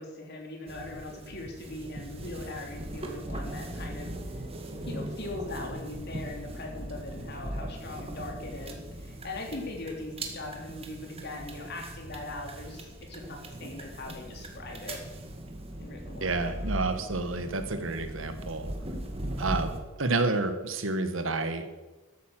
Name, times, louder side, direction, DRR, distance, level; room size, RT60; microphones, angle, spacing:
voice 1, 0.0-4.1 4.9-15.0 15.8-16.4, left 2 dB, 55° left, 1 dB, 3.2 m, -40 dB
sound 1, 0.7-19.8, right 1 dB, 30° right, 2.0 m, -39 dB
voice 2, 16.2-18.7 19.4-21.7, right 3 dB, 75° right, 9 dB, 1.4 m, -30 dB
13.0 x 9.4 x 7.6 m, 1.2 s
head